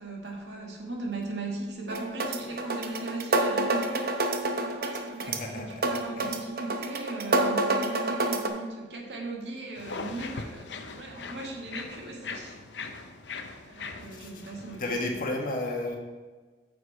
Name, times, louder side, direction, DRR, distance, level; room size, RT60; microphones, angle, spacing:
voice 1, 0.0-12.6 13.7-15.0, right 2 dB, 80° right, -1 dB, 1.8 m, -38 dB
sound 1, 1.9-8.5, right 2 dB, 60° right, 0.8 m, -28 dB
voice 2, 5.3-5.8 6.2-6.4 14.1-14.3 14.8-16.0, left 2 dB, 50° left, 1 dB, 1.4 m, -32 dB
sound 2, 9.7-14.9, left 4 dB, 80° left, 0.7 m, -40 dB
9.2 x 6.6 x 3.3 m, 1.3 s
head